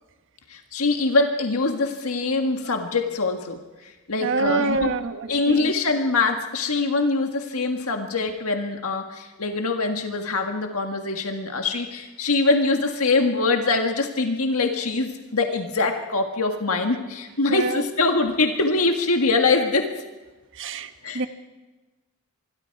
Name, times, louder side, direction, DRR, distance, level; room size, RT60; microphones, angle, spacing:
voice 1, 0.5-4.9 5.3-19.9 21.0-21.3, left 3 dB, 75° left, 4 dB, 1.8 m, -23 dB
voice 2, 4.2-5.7 17.5-17.8 20.5-21.3, right 3 dB, 60° right, 8 dB, 1.4 m, -26 dB
26.0 x 22.0 x 4.8 m, 1.2 s
head